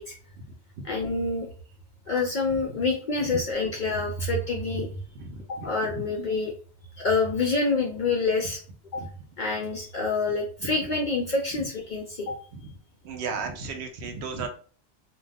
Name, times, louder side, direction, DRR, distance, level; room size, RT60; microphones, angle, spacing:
voice 1, 0.8-1.5 2.1-4.9 5.5-6.5 7.0-8.6 8.9-9.0 9.4-12.4, left 3 dB, 60° left, -1 dB, 0.5 m, -27 dB
voice 2, 5.2-5.9 9.0-9.1 10.6-10.7 12.5-12.7 13.0-14.5, right 5 dB, 70° right, 4 dB, 0.8 m, -35 dB
2.3 x 2.2 x 3.3 m, 0.43 s
omnidirectional pair, 1.2 m